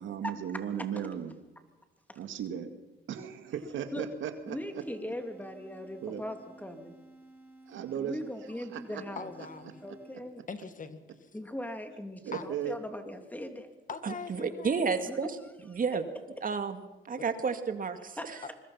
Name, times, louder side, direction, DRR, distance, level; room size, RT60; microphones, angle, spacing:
voice 1, 0.0-1.4 2.2-2.7 3.1-4.8 6.0-6.2 7.7-8.2 8.7-9.0 12.2-12.8, right 9 dB, 80° right, 8 dB, 2.2 m, -36 dB
voice 2, 4.5-6.9 7.9-9.3 9.8-10.4 11.3-13.7 14.4-14.5 15.1-15.2 15.7-15.8 18.2-18.5, left 1 dB, 10° left, 6 dB, 3.1 m, -40 dB
sound 1, 4.5-10.5, right 2 dB, 10° right, 5.7 m, -55 dB
voice 3, 9.2-9.8 10.5-11.3 12.3-12.4 13.9-14.9 17.2-17.3, left 5 dB, 40° left, 10 dB, 2.1 m, -42 dB
voice 4, 14.0-15.3 15.7-16.0 16.4-16.8 17.1-18.4, right 5 dB, 45° right, 8 dB, 2.2 m, -31 dB
25.5 x 22.0 x 5.8 m, 1.1 s
cardioid pair, 90°, 20 cm